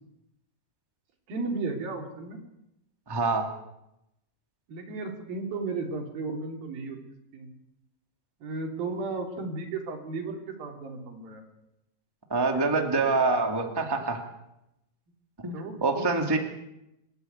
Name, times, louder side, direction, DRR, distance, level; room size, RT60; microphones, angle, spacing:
voice 1, 1.3-2.4 4.7-7.0 7.3-7.5 8.4-11.4 12.5-13.2 15.5-15.8, right 3 dB, 70° right, 2 dB, 4.9 m, -34 dB
voice 2, 3.1-3.5 12.3-14.2 15.4-16.4, right 3 dB, 10° right, 3 dB, 1.9 m, -25 dB
26.5 x 13.5 x 9.4 m, 0.87 s
omnidirectional pair, 4.3 m